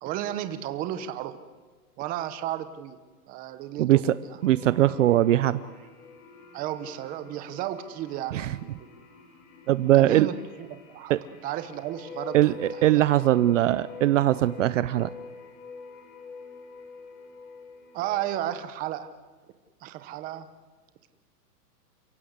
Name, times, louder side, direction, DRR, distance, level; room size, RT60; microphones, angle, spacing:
voice 1, 0.0-1.4 2.0-3.0 3.3-4.4 6.5-9.0 9.9-11.1 11.4-13.0 17.9-19.1 19.8-20.5, right 12 dB, 15° right, 11 dB, 0.9 m, -34 dB
sound 1, 4.4-18.6, left 4 dB, 55° left, 6.7 m, -46 dB
voice 2, 4.4-5.6 8.3-8.5 9.7-10.3 11.1-11.2 12.3-15.1, right 14 dB, 50° right, 16 dB, 0.7 m, -21 dB
29.5 x 16.5 x 8.2 m, 1.4 s
supercardioid pair, 165°, 48 cm